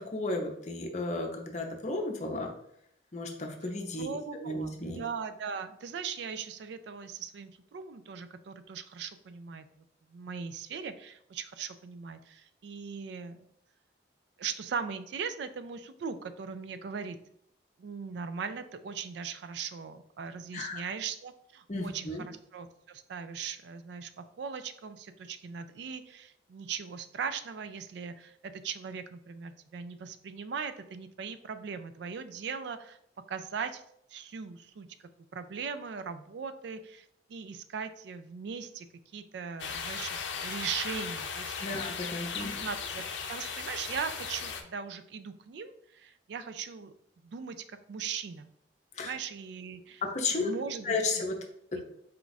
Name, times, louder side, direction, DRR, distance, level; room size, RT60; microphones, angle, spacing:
voice 1, 0.1-2.5 3.1-5.0 20.5-20.8 21.7-22.2 41.6-42.5 48.9-49.1 50.1-50.5 50.8-51.3, left 3 dB, 40° left, 2 dB, 0.7 m, -33 dB
voice 2, 4.0-9.8 10.1-13.5 14.4-17.2 17.8-33.0 33.3-33.8 34.1-34.9 35.3-38.9 39.1-41.8 42.4-43.0 43.3-46.9 47.2-48.5 49.0-50.0 50.3-51.0 51.7-51.8, right 6 dB, 65° right, 11 dB, 0.3 m, -39 dB
sound 1, 39.6-44.6, left 6 dB, 85° left, 0.5 m, -37 dB
4.4 x 2.4 x 3.9 m, 0.71 s
head